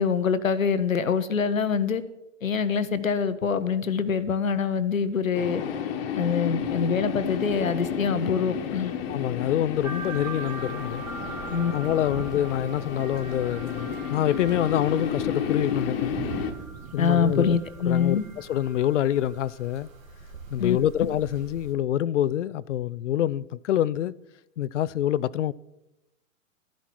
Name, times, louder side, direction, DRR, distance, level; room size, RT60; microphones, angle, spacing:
voice 1, 0.0-2.0 2.4-5.6 6.2-8.9 11.5-11.7 17.0-18.2 20.6-20.8, left 6 dB, 85° left, 1.0 m, -25 dB
sound 1, 5.3-16.5, left 8 dB, 45° left, 1.4 m, -32 dB
sound 2, 6.6-18.8, right 8 dB, 30° right, 1.1 m, -44 dB
voice 2, 9.1-11.1 11.7-16.1 16.9-17.6 17.9-19.9 20.5-24.1 24.6-25.5, left 12 dB, 65° left, 0.5 m, -26 dB
sound 3, 9.8-21.7, right 3 dB, 80° right, 2.0 m, -42 dB
13.5 x 10.5 x 4.6 m
figure-of-eight pair, 110°, 40 cm